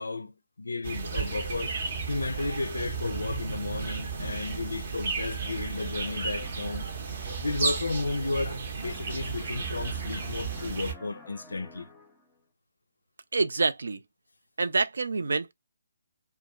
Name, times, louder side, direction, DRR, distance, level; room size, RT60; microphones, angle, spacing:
voice 1, 0.0-1.8 2.1-6.9 7.4-11.9, left 3 dB, 75° left, 0.4 m, -33 dB
sound 1, 0.8-10.9, right 4 dB, 50° right, 0.7 m, -33 dB
sound 2, 5.8-8.5 8.8-12.4, left 2 dB, 10° left, 0.6 m, -52 dB
voice 2, 13.3-14.0 14.6-15.5, right 3 dB, 70° right, 0.3 m, -26 dB
2.3 x 2.3 x 2.9 m
figure-of-eight pair, 140°, 0 cm